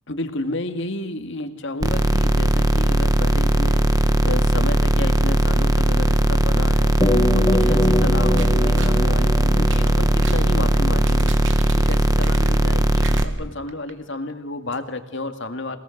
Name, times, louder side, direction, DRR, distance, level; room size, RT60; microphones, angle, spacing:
voice 1, 0.1-15.8, left 2 dB, 55° left, 7 dB, 2.2 m, -31 dB
sound 1, 1.8-13.2, right 1 dB, 15° right, 1.3 m, -18 dB
sound 2, 7.0-11.6, left 1 dB, 20° left, 1.3 m, -24 dB
sound 3, 8.4-9.0 9.6-10.5 10.9-12.7 13.0-13.9 14.3-14.4 14.7-14.8, right 6 dB, 60° right, 2.3 m, -39 dB
29.0 x 19.0 x 6.6 m, 0.88 s
head